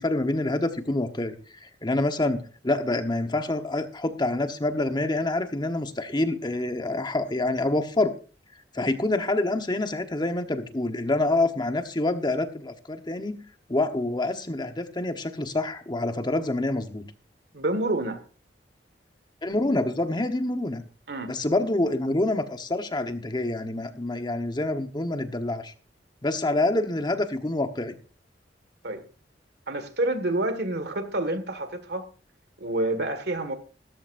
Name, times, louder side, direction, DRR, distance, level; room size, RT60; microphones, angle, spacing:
voice 1, 0.0-1.3 1.6-8.1 8.7-13.4 13.7-17.0 19.4-20.8 21.3-25.7 26.2-27.9, left 2 dB, 25° left, 1.2 m, -27 dB
voice 2, 17.5-18.2 21.1-21.3 28.8-29.1 29.7-32.0 32.6-33.5, right 1 dB, 65° right, 1.9 m, -28 dB
15.5 x 14.0 x 2.6 m
head